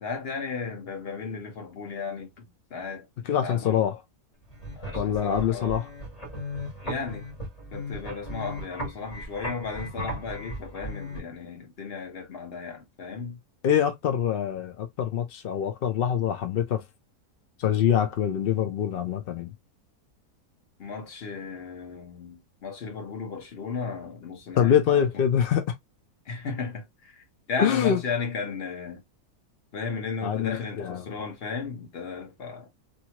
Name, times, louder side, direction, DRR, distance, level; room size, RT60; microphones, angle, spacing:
voice 1, 0.0-3.1 3.4-3.8 4.7-5.8 6.8-7.3 7.7-13.4 20.8-25.2 26.2-29.0 29.7-32.7, left 4 dB, 45° left, 1.0 m, -35 dB
voice 2, 3.3-4.0 5.0-5.8 13.6-16.8 17.6-19.5 24.6-25.7 27.6-28.0 30.2-31.0, left 9 dB, 80° left, 0.5 m, -24 dB
sound 1, 4.4-11.2, equal, 25° left, 1.3 m, -37 dB
2.8 x 2.6 x 2.8 m
omnidirectional pair, 1.7 m